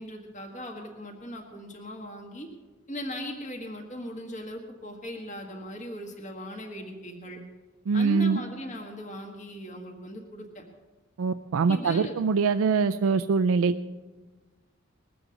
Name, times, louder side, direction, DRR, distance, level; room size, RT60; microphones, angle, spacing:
voice 1, 0.0-2.5 2.9-7.4 7.9-10.6 11.7-12.2, equal, 35° left, 0 dB, 1.6 m, -38 dB
voice 2, 7.9-8.4 11.2-13.7, right 5 dB, 90° right, 9 dB, 0.4 m, -23 dB
20.5 x 7.8 x 6.4 m, 1.3 s
head